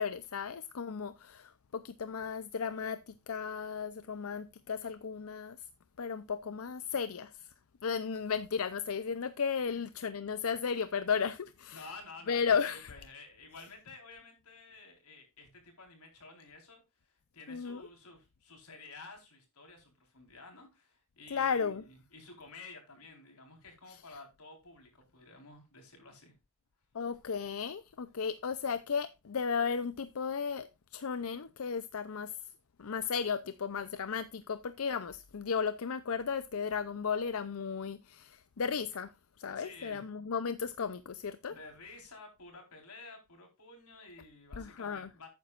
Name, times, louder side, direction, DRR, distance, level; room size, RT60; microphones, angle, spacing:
voice 1, 0.0-5.6 6.0-7.5 7.8-11.8 12.3-12.9 17.5-17.9 21.3-21.8 26.9-32.3 32.8-39.1 39.4-41.5 44.5-45.1, left 6 dB, 70° left, 0.5 m, -34 dB
voice 2, 11.7-26.3 39.5-40.0 41.5-45.3, left 3 dB, 90° left, 4.1 m, -52 dB
11.5 x 9.2 x 2.4 m
head